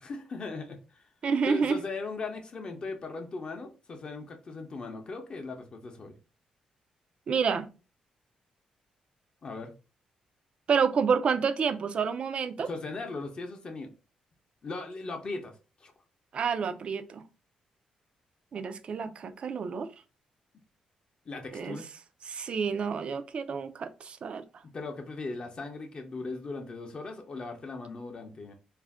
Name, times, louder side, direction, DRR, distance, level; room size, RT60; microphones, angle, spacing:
voice 1, 0.0-1.0 1.5-6.2 9.4-9.7 12.6-13.9 14.6-15.5 15.8-15.9 21.3-21.9 24.7-28.5, left 3 dB, 40° left, 0.6 m, -38 dB
voice 2, 1.2-1.8 7.3-7.7 10.7-12.7 16.3-17.2 18.5-19.9 21.5-21.8 22.3-24.4, right 6 dB, 50° right, 0.3 m, -29 dB
2.4 x 2.1 x 3.4 m
cardioid pair, 100°, 2 cm